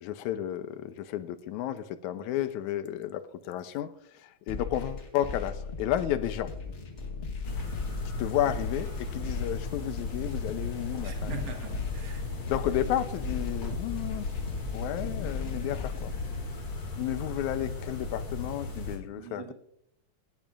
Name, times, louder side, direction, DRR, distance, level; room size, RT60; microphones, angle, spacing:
voice 1, 0.0-3.9 4.2-6.5 8.2-11.3 12.5-14.3 14.7-16.1 17.0-19.5, left 12 dB, 90° left, 12 dB, 2.1 m, -32 dB
sound 1, 4.5-16.5, left 4 dB, 70° left, 0.6 m, -38 dB
sound 2, 7.4-19.0, left 3 dB, 40° left, 2.6 m, -36 dB
voice 2, 11.0-12.3 19.2-19.5, right 6 dB, 60° right, 3 dB, 2.3 m, -42 dB
18.0 x 10.5 x 2.5 m, 0.77 s
omnidirectional pair, 3.4 m